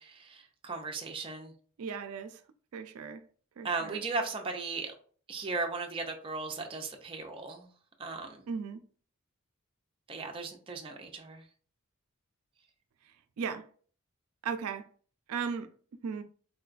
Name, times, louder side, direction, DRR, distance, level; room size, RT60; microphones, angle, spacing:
voice 1, 0.0-1.5 3.6-4.9 5.3-7.7 8.0-8.5 10.1-11.4, right 3 dB, 25° right, 0.5 m, -37 dB
voice 2, 1.8-2.4 2.7-3.2 3.6-4.0 8.5-8.8 13.4-13.6 14.4-14.8 15.3-15.7 16.0-16.2, right 6 dB, 85° right, 0.4 m, -36 dB
3.7 x 2.3 x 2.4 m
head